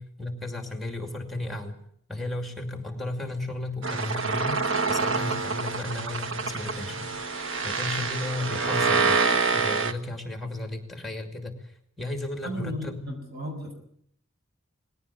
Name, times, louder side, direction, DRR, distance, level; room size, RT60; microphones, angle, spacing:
voice 1, 0.0-1.8 2.1-7.1 7.6-11.7 12.0-13.0, left 2 dB, ahead, 4 dB, 2.5 m, -34 dB
sound 1, 3.8-9.9, right 4 dB, 70° right, 1.3 m, -26 dB
voice 2, 12.4-13.7, equal, 50° right, 3 dB, 7.3 m, -35 dB
20.0 x 17.0 x 8.4 m, 0.68 s
head